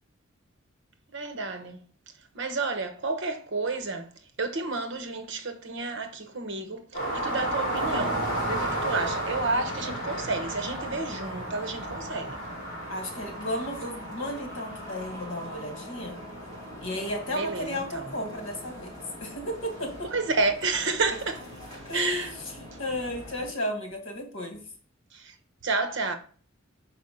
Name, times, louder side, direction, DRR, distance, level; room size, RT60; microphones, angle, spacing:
voice 1, 1.1-1.8 2.3-4.1 4.4-12.4 17.3-18.1 20.1-21.4 21.9-22.3 25.1-25.3 25.6-26.2, right 3 dB, 60° right, 1.0 m, -30 dB
sound 1, 6.9-18.4 19.9-20.0, right 1 dB, 40° left, 3.2 m, -34 dB
sound 2, 7.6-23.5, equal, 20° left, 4.2 m, -43 dB
voice 2, 12.9-16.2 16.8-18.9 19.2-20.1 21.9-22.3 22.6-24.6, left 1 dB, 65° left, 2.1 m, -34 dB
6.1 x 4.8 x 5.4 m
head